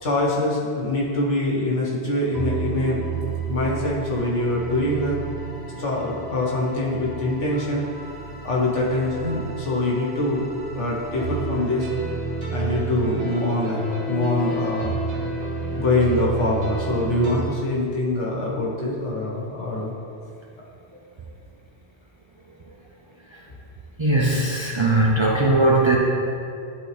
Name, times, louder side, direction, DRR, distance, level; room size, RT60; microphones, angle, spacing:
voice 1, 0.0-3.0 3.5-5.2 5.8-7.9 8.4-10.5 10.7-11.9 12.5-15.0 15.8-19.9, left 2 dB, 90° left, -4 dB, 1.7 m, -24 dB
sound 1, 2.3-17.4, right 3 dB, 60° right, 1.4 m, -31 dB
voice 2, 24.0-26.0, right 2 dB, 35° right, -3 dB, 0.5 m, -19 dB
10.5 x 4.0 x 3.3 m, 2.5 s
omnidirectional pair, 1.2 m